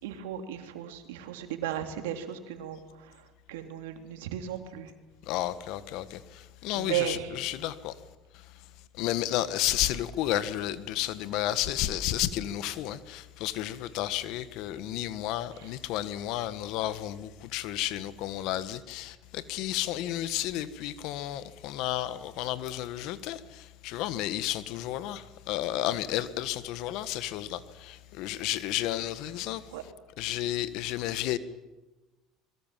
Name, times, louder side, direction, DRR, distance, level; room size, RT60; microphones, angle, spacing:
voice 1, 0.0-3.2 3.5-4.9 6.7-7.3 29.7-29.8, right 10 dB, 90° right, 3.0 m, -35 dB
voice 2, 5.3-7.9 9.0-29.6 30.2-31.4, left 13 dB, 70° left, 1.5 m, -32 dB
24.5 x 22.0 x 7.6 m
supercardioid pair, 95°, 0 cm